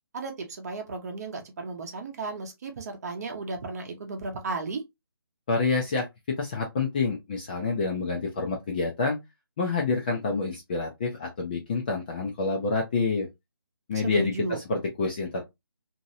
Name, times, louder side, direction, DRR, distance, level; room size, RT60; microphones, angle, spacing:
voice 1, 0.1-4.8 13.9-14.6, right 3 dB, 40° right, 0.8 m, -34 dB
voice 2, 5.5-9.2 9.6-13.3 13.9-15.4, left 4 dB, 20° left, 0.5 m, -28 dB
3.0 x 2.7 x 2.6 m
figure-of-eight pair, 160°, 13 cm